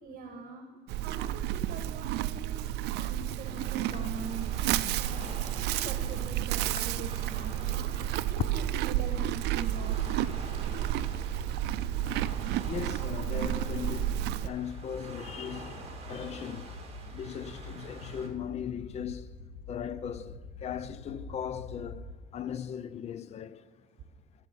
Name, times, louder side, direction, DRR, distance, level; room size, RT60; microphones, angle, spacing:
voice 1, 0.0-0.7 1.0-10.1, right 4 dB, 60° right, 1.6 m, -43 dB
Livestock farm animals working animals, 0.9-14.5, right 13 dB, 80° right, 0.4 m, -31 dB
Waves surf, 3.4-18.3, right 3 dB, 35° right, 2.4 m, -47 dB
voice 2, 5.5-6.2 6.8-6.9 8.4-8.5 12.7-16.7 17.1-19.3 19.7-23.7, left 8 dB, 40° left, 0.5 m, -38 dB
sound 1, 9.8-22.1, left 2 dB, 80° left, 1.6 m, -46 dB
13.5 x 8.2 x 6.9 m
cardioid pair, 110°, 17 cm